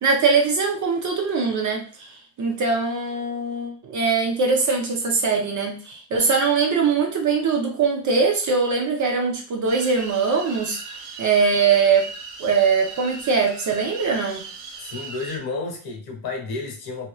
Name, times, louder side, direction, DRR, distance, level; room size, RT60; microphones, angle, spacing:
voice 1, 0.0-10.8 11.2-12.1 12.4-14.4, right 5 dB, 40° right, 1 dB, 0.6 m, -22 dB
sound 1, 9.7-15.4, right 4 dB, 75° right, 1.0 m, -38 dB
voice 2, 14.8-17.1, left 3 dB, 55° left, 0 dB, 1.1 m, -31 dB
3.0 x 2.9 x 2.3 m, 0.39 s
cardioid pair, 160°, 45 cm